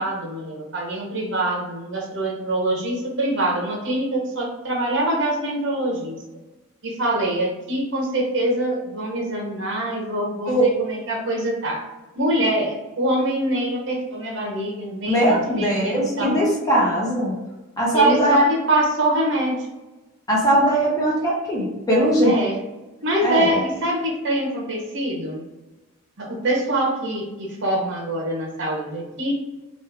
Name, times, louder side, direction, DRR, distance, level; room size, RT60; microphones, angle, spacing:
voice 1, 0.0-6.2 6.8-11.8 12.2-16.4 17.9-19.7 22.2-22.6 23.0-25.4 26.2-29.3, right 1 dB, 55° right, 0 dB, 0.8 m, -24 dB
voice 2, 15.1-17.3 17.8-18.4 20.3-22.4 23.2-23.5, right 1 dB, 15° left, -5 dB, 0.7 m, -19 dB
3.1 x 2.2 x 3.3 m, 1.1 s
head